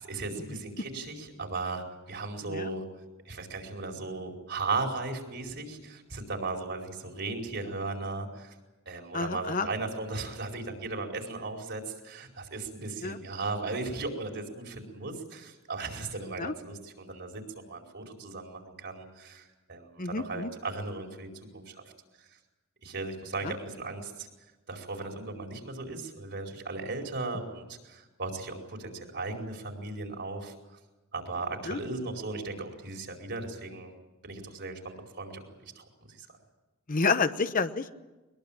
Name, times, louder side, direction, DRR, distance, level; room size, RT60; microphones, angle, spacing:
voice 1, 0.0-2.9 3.2-8.5 8.8-17.4 17.7-21.8 22.2-22.3 22.8-24.3 24.7-30.5 31.1-33.9 34.2-35.4 35.7-35.8 36.2-36.3, right 3 dB, 55° right, 2 dB, 4.9 m, -36 dB
voice 2, 9.1-9.7 13.0-13.2 16.4-16.5 20.0-20.5 23.4-23.5 31.7-31.8 36.9-37.9, left 4 dB, 40° left, 10 dB, 1.0 m, -29 dB
22.0 x 22.0 x 9.0 m, 1.1 s
head